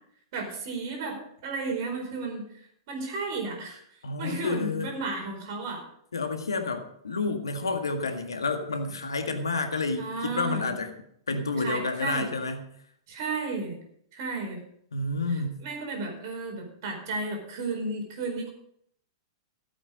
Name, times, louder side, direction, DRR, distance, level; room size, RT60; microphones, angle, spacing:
voice 1, 0.3-2.5 2.9-3.8 4.2-5.8 10.0-10.7 11.6-12.3 13.1-13.8 14.1-14.6 15.6-18.5, right 3 dB, 45° right, 2 dB, 4.8 m, -33 dB
voice 2, 4.0-4.9 6.1-10.9 11.3-12.7 14.9-15.6, left 3 dB, 70° left, 6 dB, 1.8 m, -30 dB
16.0 x 8.6 x 5.1 m, 0.69 s
figure-of-eight pair, 100°, 2 cm